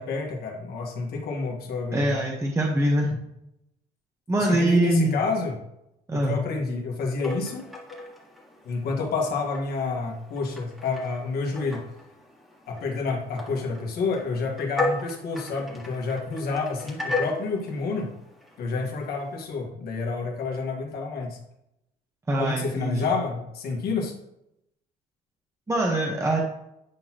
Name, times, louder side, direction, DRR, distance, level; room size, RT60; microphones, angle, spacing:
voice 1, 0.0-2.2 4.4-5.6 6.1-7.6 8.6-11.8 12.7-18.1 18.6-21.4 22.4-24.1, left 4 dB, 65° left, 1 dB, 1.6 m, -29 dB
voice 2, 1.9-3.2 4.3-5.1 6.1-6.3 22.3-23.0 25.7-26.4, right 1 dB, 15° right, -1 dB, 1.1 m, -23 dB
sound 1, 7.2-19.5, left 2 dB, ahead, 1.8 m, -36 dB
9.1 x 4.0 x 3.0 m, 0.82 s
cardioid pair, 110°, 17 cm